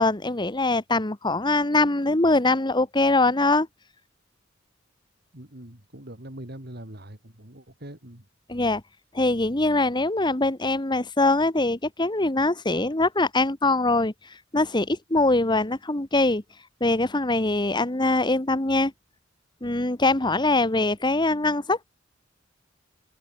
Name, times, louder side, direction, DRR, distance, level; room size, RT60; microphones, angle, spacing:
voice 1, 0.0-3.7 8.5-8.8 9.1-14.1 14.5-16.4 16.8-18.9 19.6-21.9, left 2 dB, 25° left, 1.5 m, -23 dB
voice 2, 5.3-8.2, right 1 dB, 55° right, 4.1 m, -42 dB
open air
head